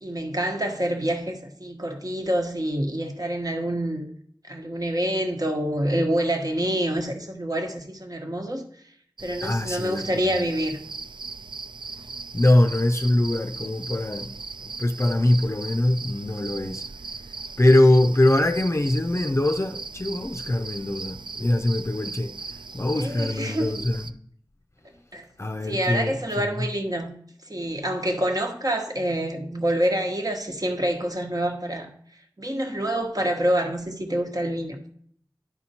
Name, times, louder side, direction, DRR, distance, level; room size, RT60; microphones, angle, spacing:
voice 1, 0.0-4.1 4.4-8.6 9.2-10.8 22.9-23.7 25.1-25.3 25.6-27.1 27.4-31.9 32.4-34.8, right 1 dB, 50° right, 1.2 m, -27 dB
sound 1, 9.2-24.1, right 4 dB, 80° right, 0.4 m, -38 dB
voice 2, 9.4-10.5 12.3-14.3 14.8-16.8 17.6-22.3 22.7-24.0 25.4-26.6, left 1 dB, 35° left, 0.5 m, -22 dB
10.5 x 4.4 x 4.2 m
wide cardioid pair, 50°, 8 cm